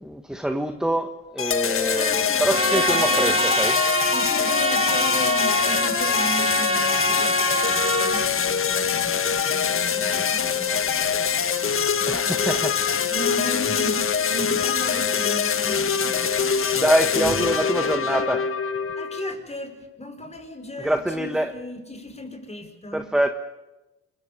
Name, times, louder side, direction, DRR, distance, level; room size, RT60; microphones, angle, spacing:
voice 1, 0.0-3.8 12.1-12.8 16.8-18.4 20.8-21.5 22.9-23.3, right 1 dB, ahead, 6 dB, 1.5 m, -25 dB
sound 1, 1.4-19.3, left 7 dB, 45° left, 1.6 m, -24 dB
voice 2, 1.9-3.5 4.1-12.7 13.1-16.8 17.1-18.4 19.0-23.1, left 1 dB, 20° left, 7 dB, 5.2 m, -36 dB
Trumpet, 2.5-8.3, right 2 dB, 20° right, 3.1 m, -25 dB
27.0 x 22.5 x 6.9 m, 1.1 s
cardioid pair, 90°, 30 cm